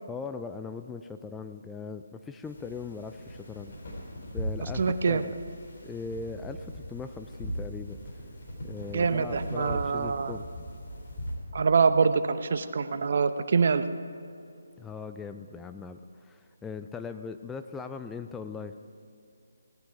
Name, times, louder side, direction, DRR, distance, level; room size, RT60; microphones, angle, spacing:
voice 1, 0.1-3.7 4.3-5.3 5.8-8.0 8.6-10.5 14.8-18.7, left 5 dB, 5° left, 7 dB, 0.3 m, -39 dB
sound 1, 2.4-11.3, equal, 45° left, 3.5 m, -39 dB
voice 2, 4.6-5.2 8.9-10.3 11.5-13.8, right 5 dB, 50° right, 11 dB, 0.7 m, -25 dB
17.5 x 10.0 x 4.7 m, 2.6 s
figure-of-eight pair, 150°, 0 cm